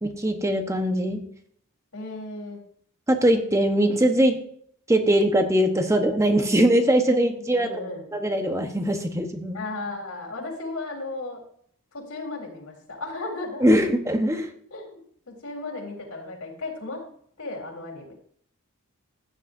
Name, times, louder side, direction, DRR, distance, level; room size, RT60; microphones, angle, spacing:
voice 1, 0.0-1.2 3.1-4.4 4.9-7.7 8.1-9.6 13.6-14.5, right 1 dB, 15° right, 5 dB, 1.1 m, -21 dB
voice 2, 1.9-2.6 7.6-8.1 9.5-11.4 11.9-13.7 14.7-15.0 15.4-17.0 17.4-18.1, left 2 dB, 85° left, 0 dB, 4.0 m, -35 dB
15.5 x 10.5 x 2.7 m, 0.63 s
head